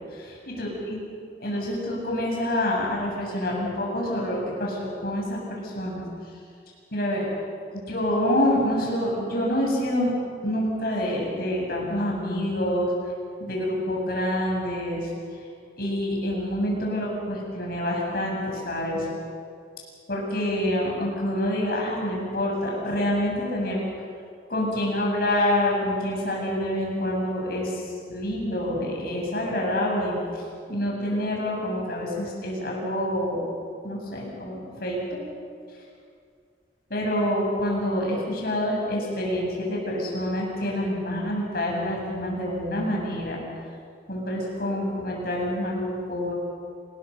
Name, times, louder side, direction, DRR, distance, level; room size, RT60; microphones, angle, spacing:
voice 1, 0.1-1.0 1.4-6.0 6.9-7.2 7.7-10.1 10.4-12.9 13.4-15.1 15.8-19.1 20.1-23.8 24.5-30.4 30.7-33.4 33.8-35.2 36.9-43.4 44.1-46.3, left 1 dB, 60° left, -2 dB, 7.8 m, -27 dB
27.5 x 21.0 x 6.8 m, 2.2 s
head